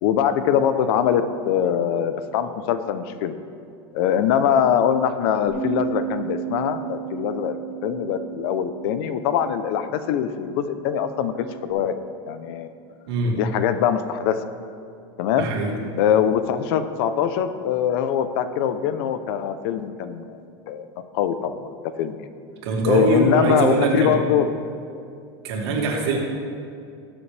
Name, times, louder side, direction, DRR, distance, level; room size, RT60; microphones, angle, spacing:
voice 1, 0.0-3.4 3.9-11.9 12.3-12.7 13.3-14.4 15.2-15.5 16.0-20.4 20.7-21.6 22.0-22.3 22.8-24.5, left 9 dB, 65° left, 11 dB, 0.7 m, -23 dB
Bass guitar, 5.5-11.7, right 11 dB, 40° left, 3.0 m, -34 dB
voice 2, 13.1-13.4 15.4-15.8 22.6-24.2 25.4-26.2, right 3 dB, 80° right, -1 dB, 2.4 m, -22 dB
19.5 x 7.2 x 3.4 m, 2.4 s
supercardioid pair, 140°, 13 cm